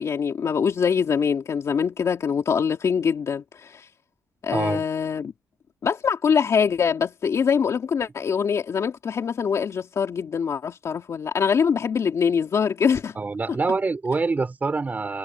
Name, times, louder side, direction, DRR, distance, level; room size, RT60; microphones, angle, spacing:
voice 1, 0.0-3.9 4.4-5.3 5.8-13.2, left 6 dB, 45° left, 2.9 m, -23 dB
voice 2, 4.5-4.8 13.2-15.2, right 3 dB, 25° right, 4.3 m, -25 dB
cardioid pair, 125°, 7 cm